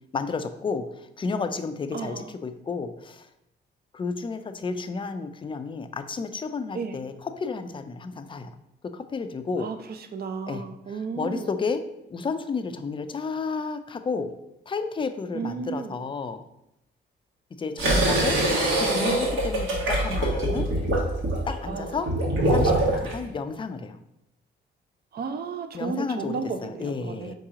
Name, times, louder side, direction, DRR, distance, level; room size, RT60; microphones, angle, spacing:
voice 1, 0.1-3.3 3.9-8.5 8.8-9.7 10.5-11.8 12.1-14.3 14.7-16.4 17.6-18.4 18.8-20.7 21.5-22.1 22.4-24.0 25.7-27.3, left 4 dB, 25° left, 9 dB, 0.4 m, -32 dB
voice 2, 1.9-2.3 6.7-7.0 9.6-9.8 10.1-11.5 15.3-15.9 21.7-21.9 25.1-27.3, right 5 dB, 50° right, 8 dB, 0.5 m, -33 dB
sound 1, 17.8-23.1, right 1 dB, 80° right, 1.3 m, -24 dB
4.7 x 2.9 x 3.6 m, 0.85 s
cardioid pair, 80°, 20 cm